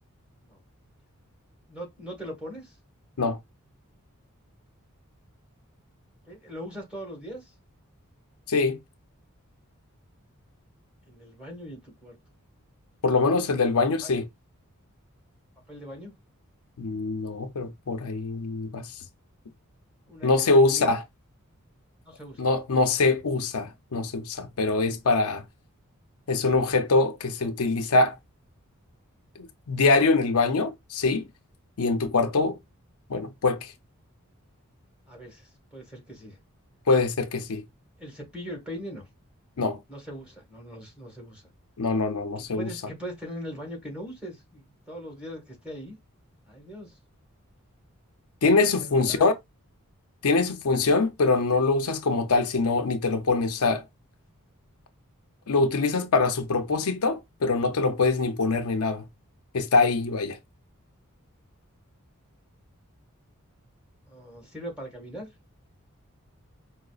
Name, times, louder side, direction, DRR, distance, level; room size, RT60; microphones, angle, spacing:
voice 1, 1.7-2.8 6.2-7.5 11.1-12.2 14.0-14.1 15.7-16.1 20.1-21.0 22.0-22.5 35.1-36.4 38.0-39.1 39.9-41.4 42.4-46.0 46.5-47.0 48.8-49.2 64.1-65.3, equal, 5° right, 1.4 m, -40 dB
voice 2, 8.5-8.8 13.0-14.2 16.8-18.9 20.2-21.0 22.4-25.4 26.3-28.2 29.4-31.3 31.8-32.6 33.1-33.7 36.9-37.6 39.6-39.8 41.8-42.7 48.4-49.3 50.2-53.8 55.5-59.1 59.5-60.4, left 3 dB, 85° left, 0.6 m, -23 dB
4.9 x 2.0 x 2.3 m
head